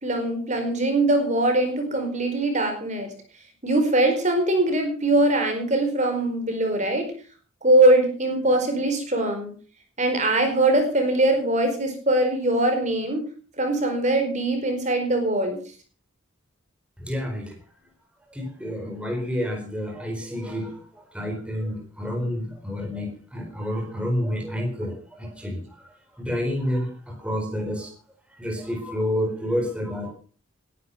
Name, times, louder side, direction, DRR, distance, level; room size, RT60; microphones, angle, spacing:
voice 1, 0.0-3.1 3.6-7.1 7.6-9.5 10.0-13.3 13.6-15.6, right 1 dB, 35° right, 5 dB, 4.5 m, -22 dB
voice 2, 17.0-17.5 18.3-27.9 28.3-30.2, equal, 5° right, 2 dB, 4.4 m, -29 dB
20.5 x 11.0 x 5.8 m, 0.39 s
head